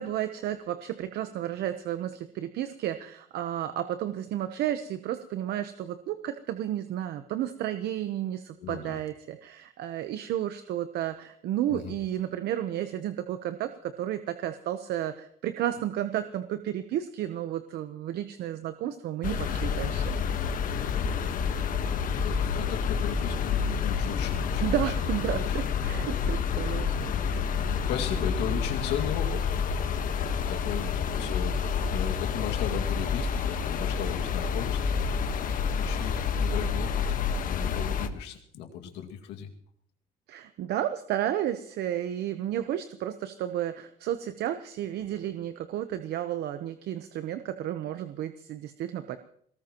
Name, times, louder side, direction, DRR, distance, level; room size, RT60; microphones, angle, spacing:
voice 1, 0.0-20.0 24.6-27.0 40.3-49.2, right 11 dB, 75° right, 10 dB, 0.9 m, -32 dB
voice 2, 8.6-9.0 11.7-12.0 21.0-25.0 25.4-25.5 27.6-36.9 37.2-39.5, left 8 dB, 85° left, 3 dB, 2.2 m, -37 dB
sound 1, 19.2-38.1, left 6 dB, 55° left, 1.4 m, -28 dB
23.0 x 19.0 x 3.0 m, 0.64 s
cardioid pair, 110°, 17 cm